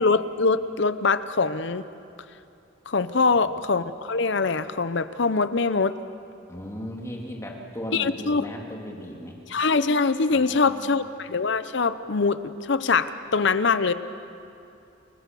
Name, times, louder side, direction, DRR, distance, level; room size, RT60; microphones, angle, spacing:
voice 1, 0.0-1.8 2.9-6.0 7.9-8.4 9.5-12.4 12.7-13.9, left 4 dB, 60° left, 13 dB, 0.7 m, -23 dB
voice 2, 3.1-3.6 6.5-9.4 10.3-11.0, equal, 15° left, -1 dB, 2.7 m, -37 dB
30.0 x 19.5 x 6.9 m, 2.7 s
head